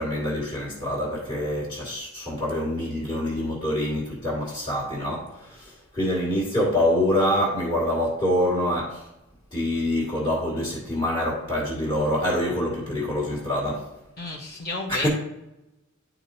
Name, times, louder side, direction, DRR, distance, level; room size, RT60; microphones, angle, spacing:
voice 1, 0.0-9.0 9.5-13.9 14.9-15.1, left 1 dB, 25° left, -5 dB, 2.0 m, -26 dB
voice 2, 14.2-15.1, left 2 dB, 45° left, -2 dB, 1.2 m, -32 dB
11.0 x 4.5 x 2.8 m, 0.92 s
head